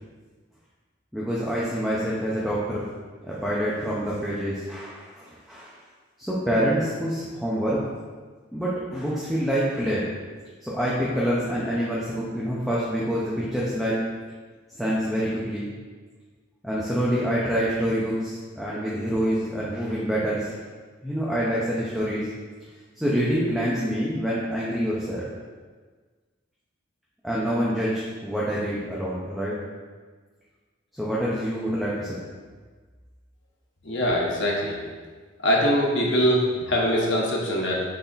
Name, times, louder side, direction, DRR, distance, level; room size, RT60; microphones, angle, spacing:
voice 1, 1.1-2.9 3.2-5.8 6.2-8.0 8.5-10.2 10.6-14.0 14.8-15.7 16.6-20.5 21.0-22.3 23.0-25.3 27.2-29.6 30.9-32.3, equal, ahead, -8 dB, 0.6 m, -26 dB
voice 2, 33.8-34.8 35.4-37.8, equal, 65° left, -3 dB, 1.0 m, -23 dB
3.9 x 3.4 x 4.0 m, 1.4 s
head